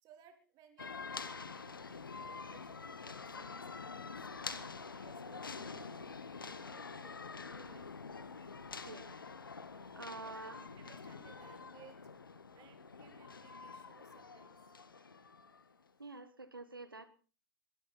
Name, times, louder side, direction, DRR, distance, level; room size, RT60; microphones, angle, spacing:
voice 1, 0.0-7.9 10.1-12.0 12.5-14.5, right 9 dB, 35° right, 6 dB, 3.6 m, -62 dB
sound 1, 0.8-15.8, left 4 dB, 80° left, 1.4 m, -47 dB
voice 2, 8.8-9.2 9.9-10.6 16.0-17.1, right 3 dB, 90° right, 13 dB, 1.6 m, -47 dB
21.5 x 12.5 x 4.3 m, 0.36 s
figure-of-eight pair, 105°, 11 cm